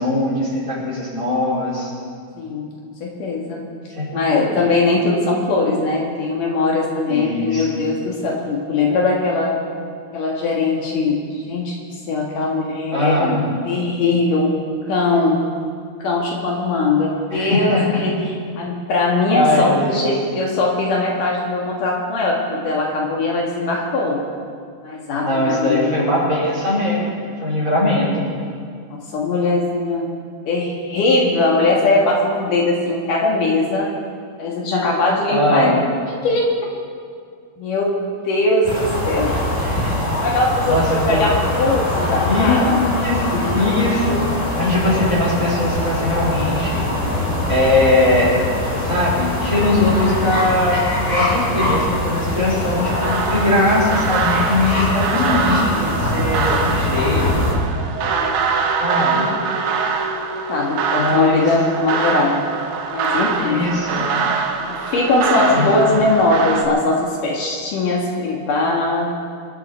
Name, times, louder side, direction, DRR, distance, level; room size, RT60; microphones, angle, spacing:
voice 1, 0.0-1.9 4.0-4.5 7.1-7.8 12.9-13.5 17.3-18.0 19.3-20.1 25.2-28.3 35.3-35.8 39.6-39.9 40.6-41.3 42.2-42.6 43.0-46.8 47.5-48.4 48.7-50.8 51.1-57.5 58.8-59.3 61.0-61.5 63.4-64.1 65.4-66.0, left 2 dB, 20° right, -7 dB, 4.9 m, -20 dB
voice 2, 2.3-2.7 3.0-3.7 4.1-9.6 10.1-11.2 11.5-11.8 12.1-13.3 13.7-14.5 14.9-15.4 16.0-18.1 18.6-24.2 24.8-25.9 28.9-30.1 30.5-33.9 34.4-35.7 36.2-36.5 37.6-37.9 38.3-39.3 40.2-40.8 41.1-42.8 58.1-58.4 60.5-62.4 62.9-63.8 64.7-69.0, left 2 dB, 70° left, -2 dB, 3.3 m, -20 dB
sound 1, 38.6-57.5, left 1 dB, 10° left, 5.1 m, -22 dB
sound 2, 52.9-66.7, right 5 dB, 65° right, 2.3 m, -23 dB
25.5 x 10.5 x 4.5 m, 2.1 s
omnidirectional pair, 4.0 m